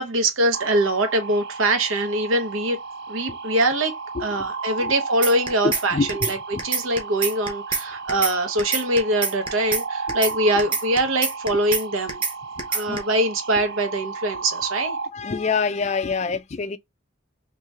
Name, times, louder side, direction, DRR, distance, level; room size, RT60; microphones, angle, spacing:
voice 1, 0.0-2.8 3.1-3.9 4.2-6.4 6.6-12.2 12.7-15.0, right 1 dB, 85° right, 0.9 m, -23 dB
sound 1, 0.5-15.1, right 4 dB, 55° right, 0.4 m, -34 dB
sound 2, 5.2-5.8 6.1-6.3 6.6-7.8 8.1-8.3 8.6-9.8 10.1-10.3 10.6-11.8 12.1-12.3 12.6-13.0, right 5 dB, 25° right, 0.9 m, -24 dB
voice 2, 5.6-6.6 11.5-11.6 12.6-13.0 15.1-16.8, left 4 dB, 35° left, 0.3 m, -26 dB
2.9 x 2.7 x 3.3 m
head